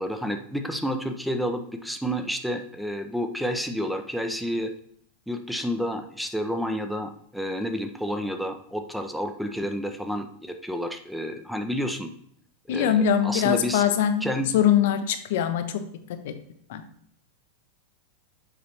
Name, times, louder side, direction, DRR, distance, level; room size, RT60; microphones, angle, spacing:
voice 1, 0.0-4.7 5.3-12.1 12.7-13.8 14.2-14.5, equal, ahead, 6 dB, 0.5 m, -30 dB
voice 2, 12.7-14.2 14.5-15.8 16.2-16.3 16.7-16.8, left 9 dB, 55° left, 9 dB, 0.6 m, -22 dB
6.8 x 5.0 x 2.9 m, 0.66 s
figure-of-eight pair, 90°, 0 cm